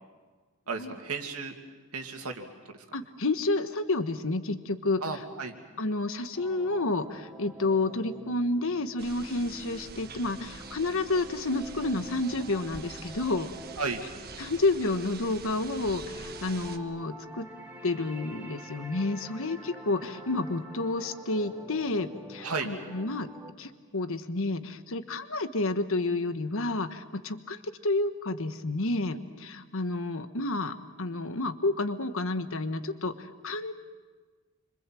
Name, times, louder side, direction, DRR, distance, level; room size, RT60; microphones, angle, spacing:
voice 1, 0.7-1.5 1.9-2.8 5.0-5.6 13.8-14.0 22.4-22.7, right 4 dB, 80° right, 4 dB, 2.5 m, -34 dB
voice 2, 2.9-5.0 5.8-13.5 14.4-17.5 17.8-23.3 23.6-33.7, left 2 dB, 65° left, 10 dB, 1.3 m, -30 dB
sound 1, 6.3-23.5, right 1 dB, 5° right, 2.8 m, -47 dB
sound 2, 9.0-16.8, right 4 dB, 45° right, 1.4 m, -45 dB
27.5 x 25.0 x 7.7 m, 1.4 s
head